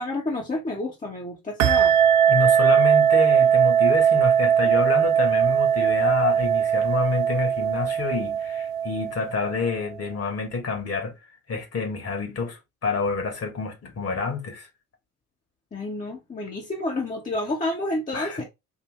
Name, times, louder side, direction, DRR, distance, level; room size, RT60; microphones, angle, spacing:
voice 1, 0.0-1.9 15.7-18.4, left 2 dB, 15° left, 1.2 m, -29 dB
sound 1, 1.6-9.7, right 8 dB, 75° right, 0.5 m, -20 dB
voice 2, 2.3-11.1 11.5-14.7 18.1-18.4, left 4 dB, 35° left, 1.7 m, -28 dB
4.7 x 2.6 x 3.4 m
figure-of-eight pair, 55°, 45 cm